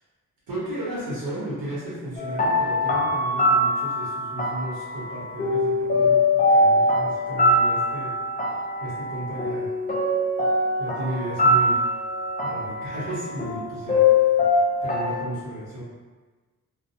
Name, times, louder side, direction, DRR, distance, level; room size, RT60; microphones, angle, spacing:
voice 1, 0.5-8.1 8.8-9.7 10.8-11.8 12.4-14.3 14.8-15.8, right 1 dB, 85° right, -9 dB, 1.1 m, -34 dB
sound 1, 2.2-15.2, left 2 dB, 25° left, 0.4 m, -22 dB
2.3 x 2.2 x 2.6 m, 1.3 s
wide cardioid pair, 110°, 34 cm